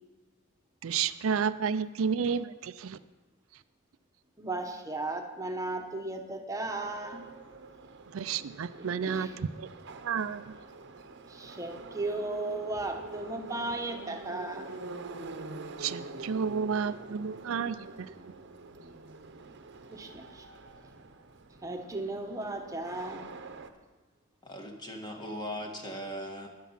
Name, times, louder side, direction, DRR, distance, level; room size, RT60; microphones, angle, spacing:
voice 1, 0.8-3.0 8.1-9.7 10.0-10.5 15.8-18.1, right 6 dB, 75° right, 13 dB, 0.4 m, -31 dB
voice 2, 4.4-7.2 8.8-9.3 11.3-14.8 19.9-20.4 21.6-23.3, right 2 dB, 15° right, 4 dB, 1.0 m, -36 dB
Subway metro underground, 6.6-23.7, right 3 dB, 60° right, 0.8 m, -46 dB
voice 3, 24.4-26.5, equal, 20° left, 2 dB, 1.6 m, -39 dB
13.0 x 10.5 x 5.7 m, 1.3 s
head